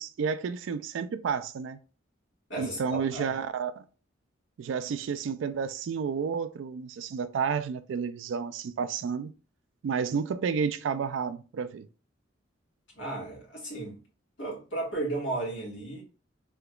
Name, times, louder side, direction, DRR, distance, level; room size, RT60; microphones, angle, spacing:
voice 1, 0.0-1.8 2.6-3.8 4.6-9.3 9.8-11.9, right 6 dB, 70° right, 0.3 m, -31 dB
voice 2, 2.5-3.4 12.9-14.0 14.4-16.0, right 2 dB, 65° left, 1.6 m, -34 dB
3.4 x 2.8 x 2.3 m
head